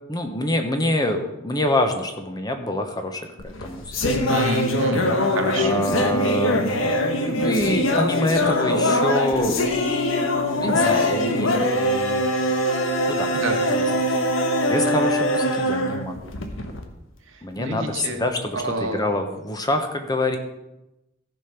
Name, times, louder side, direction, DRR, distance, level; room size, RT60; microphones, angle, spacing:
voice 1, 0.1-3.9 4.3-4.5 5.6-6.9 7.4-9.6 10.4-12.3 13.1-13.3 14.4-16.3 17.4-20.4, left 1 dB, 20° left, 5 dB, 1.0 m, -26 dB
sound 1, 3.4-16.8, left 1 dB, 85° left, 1.3 m, -22 dB
voice 2, 4.3-5.8 13.3-13.6 17.3-18.3 18.5-19.1, right 2 dB, 80° right, 4 dB, 1.4 m, -29 dB
14.5 x 5.2 x 5.9 m, 0.94 s
head